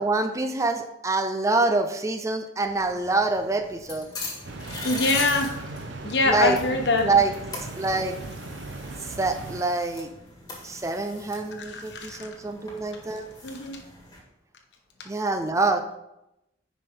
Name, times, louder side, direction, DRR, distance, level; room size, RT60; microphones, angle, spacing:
voice 1, 0.0-4.1 6.3-6.6 7.0-7.3 7.8-8.2 9.2-10.1 10.6-13.2 15.1-15.8, right 3 dB, 15° right, 7 dB, 0.5 m, -25 dB
sound 1, 2.7-14.2, left 2 dB, 20° left, 1.8 m, -40 dB
sound 2, 4.4-9.6, right 2 dB, 75° right, 0.9 m, -38 dB
voice 2, 4.8-5.6 6.0-7.1 11.6-12.3 13.4-13.8, left 2 dB, 65° left, 3 dB, 1.2 m, -24 dB
9.7 x 5.3 x 3.8 m, 0.87 s
head